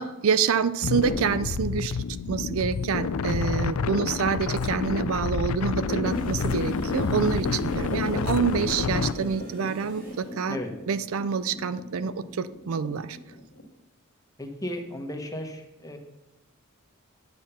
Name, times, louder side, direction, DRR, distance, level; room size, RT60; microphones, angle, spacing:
voice 1, 0.0-2.0 2.3-10.6 10.9-13.2, right 6 dB, 75° right, 14 dB, 0.4 m, -27 dB
sound 1, 0.8-9.1, left 5 dB, 85° left, 0.5 m, -28 dB
sound 2, 5.9-13.6, left 1 dB, 70° left, 1.8 m, -37 dB
sound 3, 6.1-10.5, right 1 dB, 40° right, 2.7 m, -52 dB
voice 2, 14.4-16.0, left 1 dB, 15° left, 4 dB, 1.1 m, -35 dB
9.3 x 6.8 x 5.6 m, 0.97 s
head